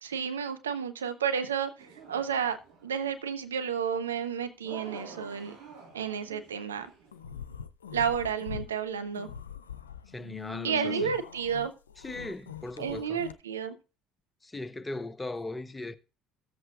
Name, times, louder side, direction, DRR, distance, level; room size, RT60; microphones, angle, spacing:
voice 1, 0.0-2.6 2.8-5.6 5.9-6.9 7.9-9.3 10.6-11.7 12.8-13.8, right 7 dB, 85° right, 0.8 m, -31 dB
sound 1, 1.8-3.0 4.6-7.2, right 4 dB, 60° right, 4.2 m, -48 dB
sound 2, 7.1-8.7 9.1-13.3, left 8 dB, 85° left, 0.5 m, -42 dB
voice 2, 10.1-11.2 12.0-13.2 14.4-16.0, left 2 dB, 15° left, 0.9 m, -38 dB
14.5 x 7.6 x 2.4 m
figure-of-eight pair, 60°, 0 cm